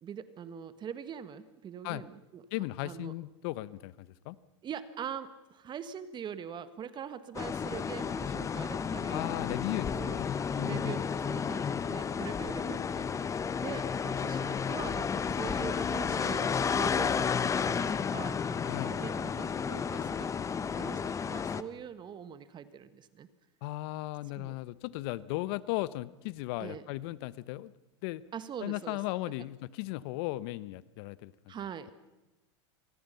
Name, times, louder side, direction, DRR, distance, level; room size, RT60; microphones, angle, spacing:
voice 1, 0.0-2.4 2.8-3.1 4.6-10.2 10.6-13.1 13.6-20.3 20.7-23.3 24.4-24.6 26.6-26.8 28.3-29.0 31.5-31.9, right 8 dB, 30° right, 13 dB, 1.5 m, -43 dB
voice 2, 2.5-4.4 9.1-11.0 18.7-19.0 23.6-27.7 28.0-28.2 28.6-31.5, left 18 dB, 60° left, 18 dB, 0.9 m, -36 dB
sound 1, 7.3-21.6, left 6 dB, 20° left, 0.9 m, -32 dB
27.0 x 19.5 x 5.7 m, 1.0 s
hypercardioid pair, 105°, 15 cm